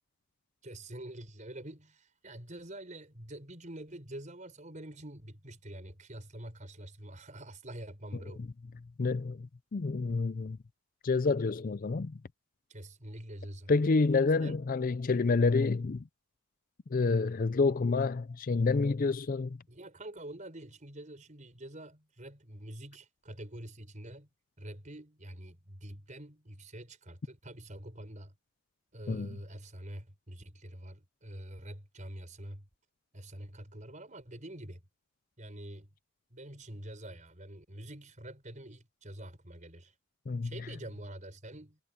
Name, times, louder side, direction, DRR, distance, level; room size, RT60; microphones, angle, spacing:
voice 1, 0.6-8.4 12.7-13.7 14.4-14.6 19.7-24.3 24.6-28.3 28.9-32.7 33.1-34.8 35.4-35.9 36.3-39.9 40.4-41.8, right 1 dB, 35° right, 5.5 m, -46 dB
voice 2, 9.0-10.6 11.0-12.1 13.7-16.0 16.9-19.6 29.1-29.3 40.3-40.5, left 4 dB, 40° left, 0.4 m, -28 dB
head